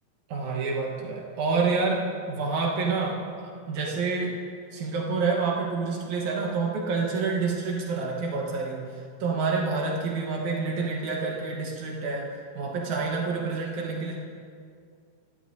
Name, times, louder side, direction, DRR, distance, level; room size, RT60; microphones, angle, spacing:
voice 1, 0.3-4.4 4.7-8.8 9.2-14.2, right 4 dB, 70° right, -1 dB, 1.8 m, -28 dB
19.5 x 13.0 x 2.7 m, 2.3 s
omnidirectional pair, 5.2 m